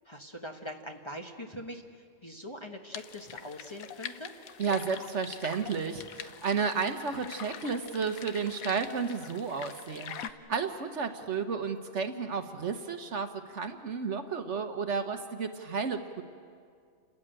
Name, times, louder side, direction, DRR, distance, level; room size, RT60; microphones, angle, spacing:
voice 1, 0.0-1.8 2.2-4.3, left 1 dB, 20° left, 2 dB, 1.2 m, -42 dB
sound 1, 2.9-10.3, left 9 dB, 90° left, 1.2 m, -44 dB
voice 2, 4.6-16.2, right 5 dB, 60° right, 7 dB, 1.3 m, -32 dB
29.5 x 13.5 x 9.0 m, 2.2 s
omnidirectional pair, 1.4 m